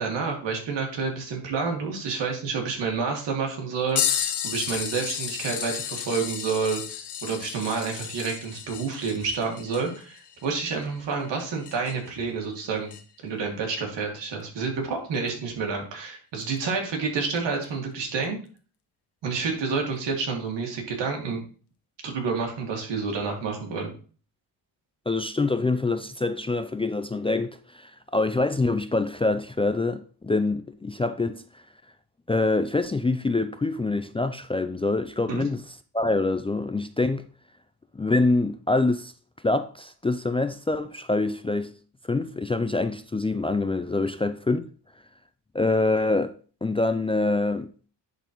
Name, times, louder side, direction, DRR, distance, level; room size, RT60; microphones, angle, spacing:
voice 1, 0.0-12.9 13.2-18.4 19.2-21.4 22.0-23.9 35.3-35.4, right 5 dB, 80° right, 2.2 m, -29 dB
sound 1, 4.0-12.2 12.9-13.0 15.3-15.4 16.4-16.6 17.6-17.7, left 9 dB, 65° left, 1.1 m, -32 dB
voice 2, 25.1-31.6 32.3-35.6 35.9-37.3 37.9-39.1 39.4-41.7 42.1-44.7 45.5-46.3 46.6-47.7, left 2 dB, 15° left, 0.4 m, -25 dB
10.5 x 4.1 x 3.0 m
cardioid pair, 75°, 43 cm